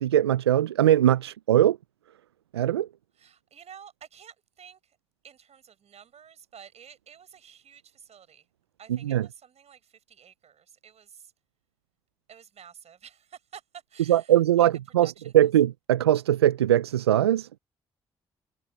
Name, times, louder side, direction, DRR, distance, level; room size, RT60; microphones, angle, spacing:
voice 1, 0.0-1.8 2.5-2.9 8.9-9.3 14.1-17.5, right 12 dB, 90° right, 0.5 m, -21 dB
voice 2, 3.2-4.8 5.2-8.4 8.8-11.3 12.3-14.7 15.0-15.3, right 8 dB, 55° right, 5.9 m, -50 dB
hypercardioid pair, 40°, 13 cm